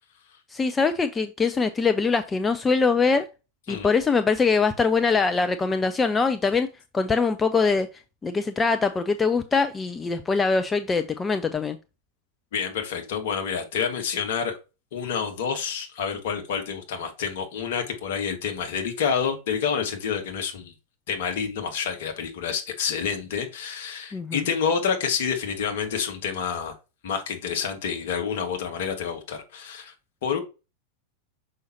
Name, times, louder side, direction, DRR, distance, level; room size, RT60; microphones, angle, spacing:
voice 1, 0.5-3.3 3.7-6.7 6.9-7.9 8.2-11.8 24.1-24.4, left 4 dB, 15° left, 0.5 m, -23 dB
voice 2, 12.5-14.5 14.9-20.7 21.1-26.7 27.0-29.9 30.2-30.4, left 7 dB, 55° left, 1.6 m, -28 dB
6.3 x 5.4 x 2.9 m
figure-of-eight pair, 90°, 0 cm